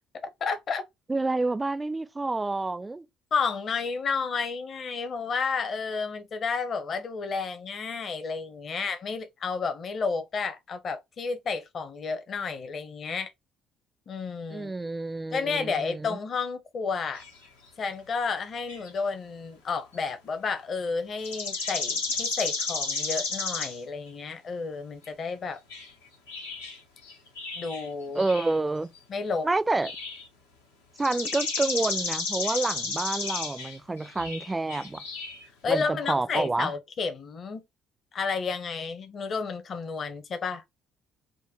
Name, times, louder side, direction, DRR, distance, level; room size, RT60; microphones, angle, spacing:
voice 1, 0.4-0.8 3.3-13.3 14.1-14.7 15.3-17.2 17.8-25.6 27.6-28.2 29.1-29.5 35.6-37.6 38.1-40.6, left 5 dB, 50° left, 0.8 m, -31 dB
voice 2, 1.1-3.1 14.5-16.2 28.1-28.9 29.4-29.9 31.0-35.0 35.7-36.7, right 2 dB, 20° right, 0.4 m, -28 dB
sound 1, 17.2-17.4 18.7-19.0 19.9-20.0 20.5-20.6 21.2-23.8 24.1-24.2 25.1-25.2 25.7-25.9 26.3-27.9 28.2-28.6 29.0-29.1 29.8-30.3 31.0-35.5, left 4 dB, 90° left, 0.8 m, -32 dB
3.8 x 2.1 x 2.8 m
hypercardioid pair, 55°, 0 cm